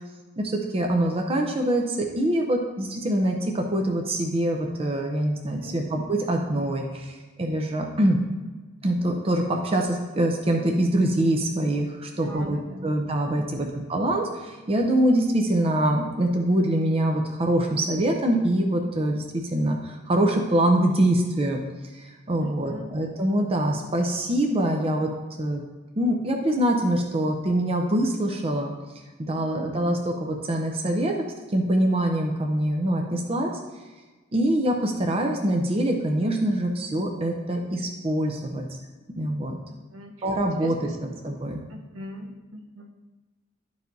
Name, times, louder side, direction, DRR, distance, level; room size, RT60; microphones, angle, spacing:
voice 1, 0.4-8.2 8.8-21.6 21.9-25.1 25.4-25.6 26.0-28.7 29.2-31.1 31.5-33.5 34.3-38.6 39.2-39.6 40.2-40.7 41.0-41.6, right 1 dB, 30° right, 2 dB, 0.6 m, -24 dB
voice 2, 12.2-12.9 13.4-13.7 22.4-22.9 29.5-29.7 39.7-40.1 40.6-41.0 41.7-42.9, equal, 75° right, 2 dB, 1.0 m, -40 dB
11.0 x 4.8 x 2.6 m, 1.3 s
head